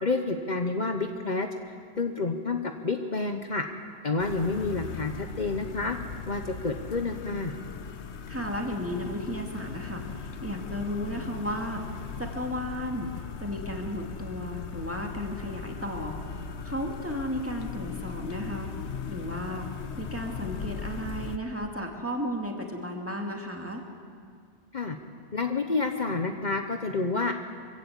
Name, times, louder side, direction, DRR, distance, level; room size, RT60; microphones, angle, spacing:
voice 1, 0.0-3.6 4.0-6.0 6.3-7.5 24.7-25.0 25.3-27.3, left 3 dB, 45° left, 5 dB, 1.1 m, -29 dB
sound 1, 4.2-21.4, left 6 dB, 90° left, 1.2 m, -38 dB
voice 2, 8.3-18.7 19.1-19.7 20.0-23.8, equal, 10° right, 1 dB, 2.3 m, -34 dB
24.5 x 15.5 x 8.2 m, 2.2 s
omnidirectional pair, 1.1 m